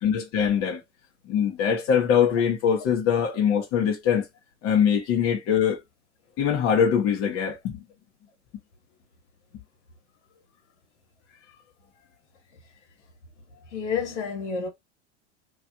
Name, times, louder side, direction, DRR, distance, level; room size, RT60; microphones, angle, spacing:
voice 1, 0.0-0.8 1.3-4.2 4.6-5.8 6.4-7.8, left 8 dB, 40° left, 1.3 m, -22 dB
voice 2, 13.7-14.7, left 6 dB, 75° left, 1.9 m, -29 dB
3.2 x 3.1 x 2.4 m
hypercardioid pair, 95°, 35 cm